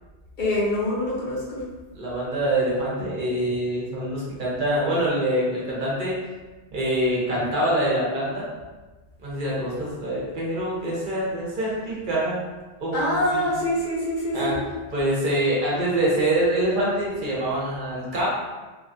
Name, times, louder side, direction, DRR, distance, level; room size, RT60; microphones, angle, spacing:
voice 1, 0.4-1.6 12.9-14.6, left 1 dB, 50° left, -6 dB, 0.8 m, -25 dB
voice 2, 2.0-6.1 6.7-8.4 9.2-12.4 12.8-13.1 13.3-13.5 14.3-14.6 14.9-18.3, right 1 dB, 50° right, -5 dB, 0.9 m, -25 dB
2.9 x 2.3 x 2.6 m, 1.2 s
omnidirectional pair, 1.2 m